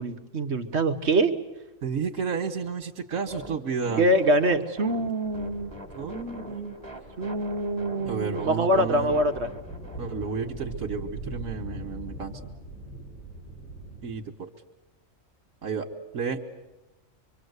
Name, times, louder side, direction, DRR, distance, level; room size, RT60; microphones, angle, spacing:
voice 1, 0.0-1.3 4.0-5.7 7.2-9.5, right 1 dB, 55° right, 6 dB, 1.4 m, -24 dB
voice 2, 1.8-4.0 6.0-6.8 8.0-9.2 10.0-12.5 14.0-14.5 15.6-15.9 16.1-16.4, right 5 dB, 75° right, 2 dB, 1.8 m, -32 dB
sound 1, 3.3-10.7, right 1 dB, 15° right, 2.7 m, -44 dB
sound 2, 5.2-14.1, right 2 dB, 75° left, 8.0 m, -42 dB
25.5 x 24.5 x 8.2 m, 1.0 s
omnidirectional pair, 1.4 m